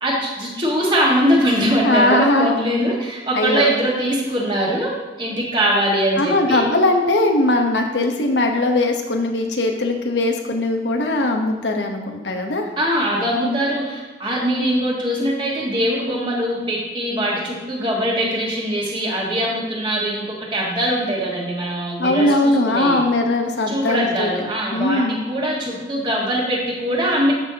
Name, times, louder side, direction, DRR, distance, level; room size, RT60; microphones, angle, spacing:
voice 1, 0.0-4.9 5.2-6.7 12.8-23.0 23.7-25.0 25.3-27.3, equal, 25° right, -3 dB, 1.7 m, -22 dB
voice 2, 1.8-2.6 3.3-3.7 6.2-12.7 22.0-24.3 24.7-25.3, left 2 dB, 85° left, 2 dB, 1.1 m, -19 dB
13.0 x 5.5 x 2.9 m, 1.3 s
head